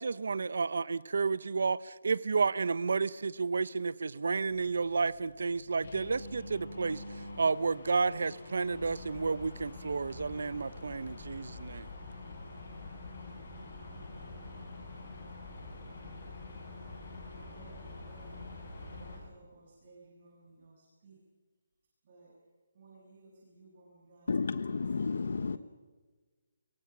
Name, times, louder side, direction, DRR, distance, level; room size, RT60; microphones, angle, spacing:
voice 1, 0.0-11.9, right 4 dB, 70° right, 0.8 m, -31 dB
sound 1, 4.5-19.2, left 2 dB, 50° left, 5.8 m, -49 dB
sound 2, 8.7-19.2, left 2 dB, ahead, 7.9 m, -48 dB
voice 2, 17.1-18.4 18.8-21.2 22.0-22.3 22.7-24.3 24.7-25.6, right 3 dB, 35° right, 7.5 m, -58 dB
voice 3, 24.3-25.6, left 4 dB, 65° left, 1.0 m, -32 dB
26.0 x 23.0 x 6.1 m
hypercardioid pair, 170°, 0 cm